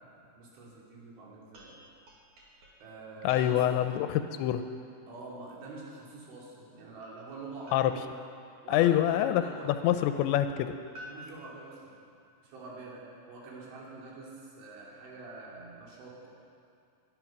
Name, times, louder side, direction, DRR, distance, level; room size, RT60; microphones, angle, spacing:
voice 1, 0.0-1.8 2.8-3.9 5.1-8.2 8.6-10.0 11.1-12.0 12.4-16.3, right 3 dB, 80° right, -4 dB, 5.4 m, -46 dB
sound 1, 1.5-3.9 7.7-9.5 10.9-12.4, equal, 50° right, 3.1 m, -53 dB
voice 2, 3.2-4.6 7.7-7.9 8.7-10.7, left 12 dB, 85° left, 9 dB, 2.7 m, -26 dB
21.0 x 11.0 x 6.0 m, 2.5 s
omnidirectional pair, 5.4 m